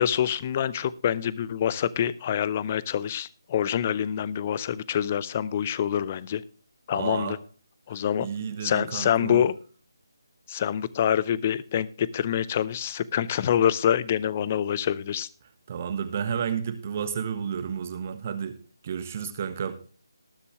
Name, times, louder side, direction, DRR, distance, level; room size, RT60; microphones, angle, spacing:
voice 1, 0.0-6.4 6.9-7.4 7.9-8.3 8.6-9.5 10.5-15.3, left 9 dB, 25° left, 20 dB, 0.6 m, -26 dB
voice 2, 6.9-7.4 7.9-9.4 15.7-18.6 18.8-19.8, right 7 dB, 30° right, 12 dB, 1.1 m, -31 dB
19.5 x 6.8 x 3.5 m, 0.40 s
figure-of-eight pair, 150°, 2 cm